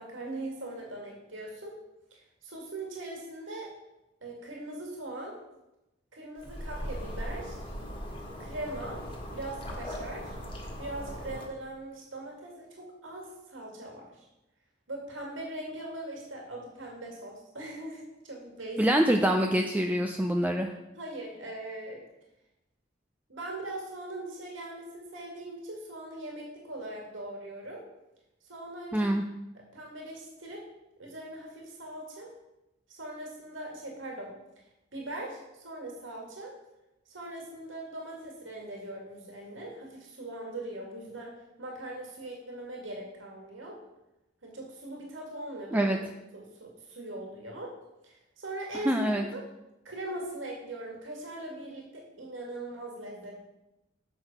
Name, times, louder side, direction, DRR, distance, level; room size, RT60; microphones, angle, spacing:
voice 1, 0.0-1.8 2.1-3.7 4.2-5.4 6.1-7.6 8.4-9.0 9.3-10.3 10.8-14.3 14.9-18.9 20.9-22.0 23.3-27.8 28.4-29.2 29.7-30.7 31.0-32.3 32.9-34.3 34.9-36.5 37.1-41.3 41.6-43.8 44.4-45.9 46.3-47.8 48.0-49.5 49.8-53.4, right 1 dB, 80° right, -1 dB, 2.1 m, -40 dB
sound 1, 6.4-11.5, equal, 30° left, 1.6 m, -39 dB
voice 2, 18.8-20.7 28.9-29.2 45.7-46.0 48.9-49.2, right 1 dB, 10° right, 3 dB, 0.4 m, -25 dB
7.9 x 6.1 x 5.4 m, 0.93 s
head